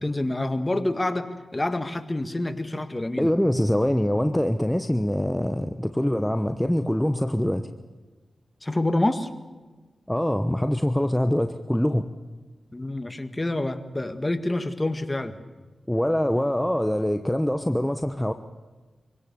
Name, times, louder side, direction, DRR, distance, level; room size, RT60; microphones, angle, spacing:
voice 1, 0.0-3.3 8.6-9.3 12.7-15.4, left 1 dB, 25° left, 9 dB, 1.9 m, -27 dB
voice 2, 3.2-7.7 10.1-12.1 15.9-18.3, equal, 10° left, 8 dB, 1.1 m, -24 dB
24.5 x 17.5 x 7.0 m, 1.3 s
cardioid pair, 40°, 0 cm